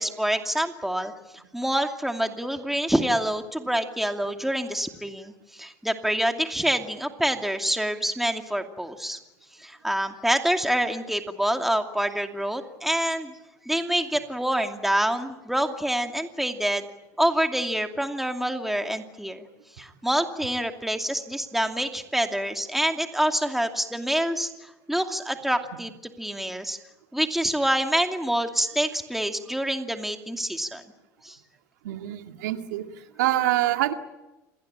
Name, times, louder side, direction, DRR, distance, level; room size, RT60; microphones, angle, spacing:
voice 1, 0.0-9.2 9.6-13.3 13.7-16.8 17.2-19.5 19.8-26.8 27.1-30.8 31.2-31.4, right 1 dB, 5° right, 5 dB, 2.6 m, -26 dB
voice 2, 31.8-32.8 33.2-33.9, right 14 dB, 85° right, 6 dB, 2.1 m, -25 dB
28.0 x 19.5 x 8.8 m, 1.0 s
hypercardioid pair, 85°, 9 cm